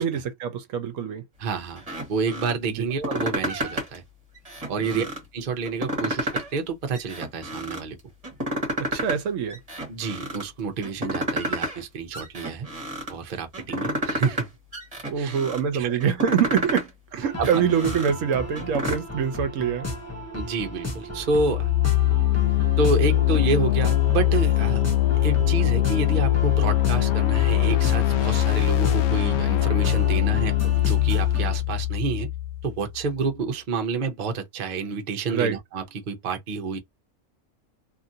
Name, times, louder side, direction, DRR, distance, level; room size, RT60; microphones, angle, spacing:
voice 1, 0.0-1.2 2.8-2.9 4.9-5.1 8.8-9.6 15.0-19.9 35.3-35.6, right 7 dB, 70° right, 0.9 m, -25 dB
voice 2, 1.4-1.8 2.1-4.0 4.7-5.0 5.3-8.0 9.9-12.7 13.1-14.5 15.2-15.4 15.7-16.0 17.4-17.5 20.3-21.7 22.8-24.8 25.2-32.3 32.6-36.8, right 4 dB, 45° right, 0.6 m, -29 dB
sound 1, 1.8-2.5 2.9-4.0 4.3-5.2 5.6-6.6 6.9-7.8 8.2-9.2 9.5-10.4 10.8-11.8 12.1-13.1 13.5-14.5 14.7-15.6 16.0-16.9 17.3-18.9, equal, 25° right, 1.4 m, -30 dB
sound 2, 17.2-31.6, left 1 dB, 15° left, 0.8 m, -35 dB
sound 3, 21.2-33.0, left 13 dB, 80° left, 1.0 m, -22 dB
2.9 x 2.4 x 2.7 m
omnidirectional pair, 1.5 m